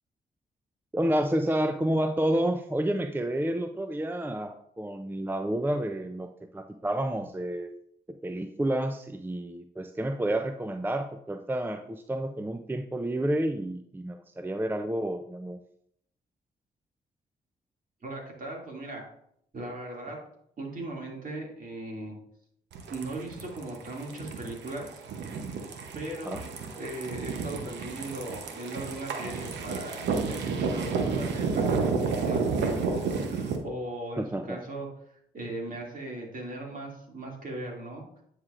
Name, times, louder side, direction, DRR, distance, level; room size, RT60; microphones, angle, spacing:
voice 1, 0.9-6.3 6.5-7.7 8.1-15.6 26.3-26.4 34.2-34.7, right 1 dB, 10° right, 7 dB, 0.5 m, -30 dB
voice 2, 18.0-19.1 19.5-20.2 20.6-22.2 22.9-25.0 25.9-26.4 26.7-34.9 35.3-38.0, right 1 dB, 50° right, -1 dB, 2.5 m, -38 dB
sound 1, 22.7-33.6, right 5 dB, 80° right, 0.9 m, -31 dB
9.3 x 4.8 x 2.5 m, 0.70 s
supercardioid pair, 50°, 18 cm